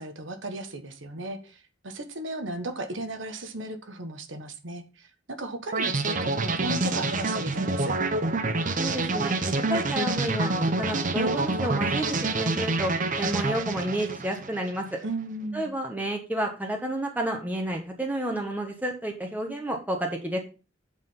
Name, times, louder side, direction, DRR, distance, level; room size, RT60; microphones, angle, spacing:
voice 1, 0.0-5.1 5.4-7.9 15.0-15.7, right 2 dB, 85° right, 7 dB, 1.3 m, -35 dB
sound 1, 5.7-14.8, right 3 dB, 45° right, 0.9 m, -27 dB
voice 2, 8.8-12.1 12.3-12.9 13.2-14.9 15.5-20.4, right 1 dB, 10° right, 1 dB, 1.4 m, -30 dB
8.2 x 5.0 x 5.5 m, 0.31 s
head